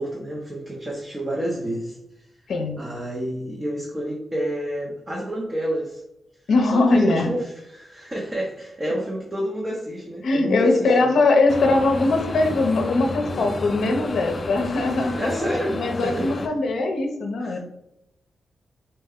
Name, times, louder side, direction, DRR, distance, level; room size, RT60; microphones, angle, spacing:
voice 1, 0.0-2.2 2.8-6.0 6.7-11.1 15.1-16.5 17.4-17.6, right 1 dB, 20° right, -4 dB, 0.7 m, -29 dB
voice 2, 2.5-2.8 6.5-7.3 10.2-17.6, left 3 dB, 70° left, 4 dB, 0.6 m, -21 dB
sound 1, 11.5-16.5, left 3 dB, 30° left, 0.3 m, -31 dB
4.2 x 2.1 x 3.6 m, 0.84 s
wide cardioid pair, 160°, 0 cm